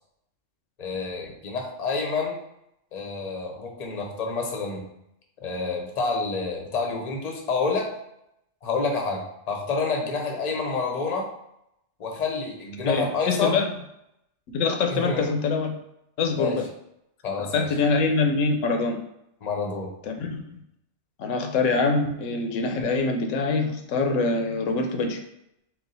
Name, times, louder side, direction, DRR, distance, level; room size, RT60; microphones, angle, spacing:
voice 1, 0.8-2.4 2.9-4.9 5.4-7.9 8.6-11.3 12.0-13.6 14.9-15.3 16.3-16.6 17.2-17.7 19.4-19.9, left 4 dB, 40° left, 1 dB, 0.7 m, -28 dB
voice 2, 12.9-13.7 14.5-15.7 16.2-16.7 17.4-19.0 20.1-20.4 21.2-25.2, left 4 dB, 85° left, 4 dB, 1.0 m, -24 dB
3.9 x 2.4 x 3.9 m, 0.80 s
omnidirectional pair, 1.3 m